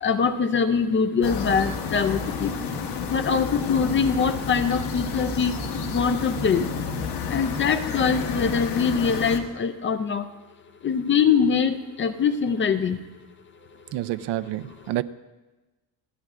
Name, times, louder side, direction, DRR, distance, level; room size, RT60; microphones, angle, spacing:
voice 1, 0.0-2.5 3.1-5.5 5.9-6.7 7.3-10.2 10.8-13.0, left 6 dB, 30° left, 9 dB, 0.4 m, -23 dB
sound 1, 1.2-9.4, left 5 dB, 70° left, 1.4 m, -30 dB
voice 2, 13.9-15.0, right 14 dB, 75° right, 15 dB, 0.5 m, -28 dB
28.0 x 9.3 x 2.4 m, 1.2 s
cardioid pair, 165°, 42 cm